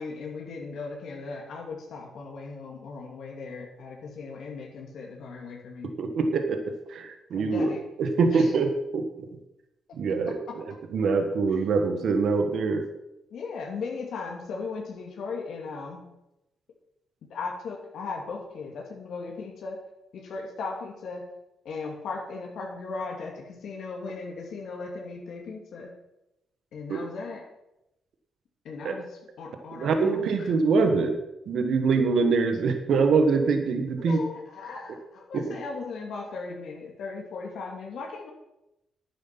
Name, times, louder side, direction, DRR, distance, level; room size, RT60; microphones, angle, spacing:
voice 1, 0.0-5.9 7.3-7.8 8.3-8.5 13.3-16.0 17.3-19.8 20.1-21.2 21.6-25.9 26.7-27.4 28.6-30.5 34.0-38.3, left 4 dB, 75° left, 0 dB, 2.4 m, -37 dB
voice 2, 6.0-7.7 8.0-9.3 9.9-10.4 10.6-12.8 26.9-27.0 28.8-29.0 29.7-31.2 31.5-34.2 35.3-35.6, right 4 dB, 70° right, 6 dB, 1.5 m, -24 dB
11.0 x 9.6 x 5.9 m, 0.89 s
cardioid pair, 90°, 0 cm